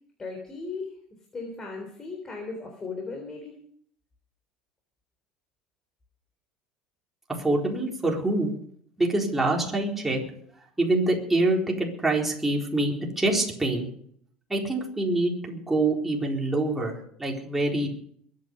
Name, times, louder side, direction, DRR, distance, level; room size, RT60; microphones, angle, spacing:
voice 1, 0.2-0.9 1.3-3.6, left 4 dB, 20° left, 2 dB, 3.6 m, -36 dB
voice 2, 7.4-8.5 9.0-10.2 10.8-13.9 14.5-17.9, right 2 dB, 10° right, -2 dB, 4.1 m, -25 dB
22.5 x 9.5 x 5.4 m, 0.62 s
cardioid pair, 135°, 3 cm